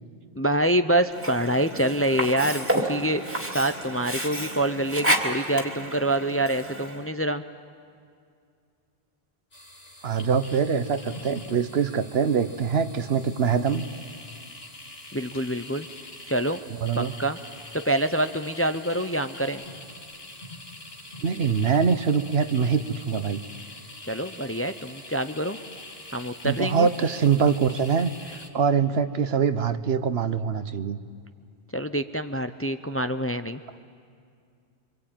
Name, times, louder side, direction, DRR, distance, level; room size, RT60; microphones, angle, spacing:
voice 1, 0.4-3.2 3.5-7.4 15.1-15.9 16.3-16.6 17.0-17.4 17.7-19.6 24.0-25.6 26.1-26.9 31.7-33.8, right 1 dB, 15° left, 9 dB, 0.6 m, -26 dB
Sink (filling or washing), 1.1-7.1, right 1 dB, 10° right, 2.4 m, -30 dB
sound 1, 9.5-28.5, left 1 dB, 70° left, 2.6 m, -44 dB
voice 2, 10.0-13.9 16.7-17.1 21.2-23.4 26.4-31.0, right 6 dB, 70° right, 11 dB, 1.2 m, -24 dB
27.0 x 24.5 x 9.1 m, 2.3 s
omnidirectional pair, 1.1 m